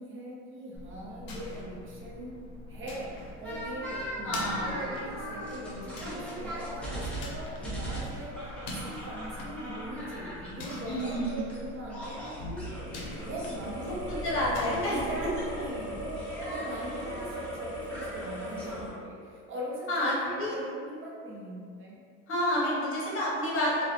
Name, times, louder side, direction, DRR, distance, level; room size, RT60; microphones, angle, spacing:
voice 1, 0.0-2.4 2.7-12.7 13.2-14.3 14.6-22.0, right 1 dB, 35° right, -4 dB, 0.6 m, -40 dB
sound 1, 0.7-16.0, left 2 dB, 85° left, 0.7 m, -43 dB
sound 2, 3.4-11.6 11.9-18.9, equal, 5° left, 0.7 m, -38 dB
voice 2, 4.2-4.8 10.9-11.5 13.8-13.9 14.2-15.3 19.9-20.5 22.3-23.8, left 1 dB, 35° left, -6 dB, 0.9 m, -29 dB
2.4 x 2.2 x 2.4 m, 2.2 s
supercardioid pair, 105°, 36 cm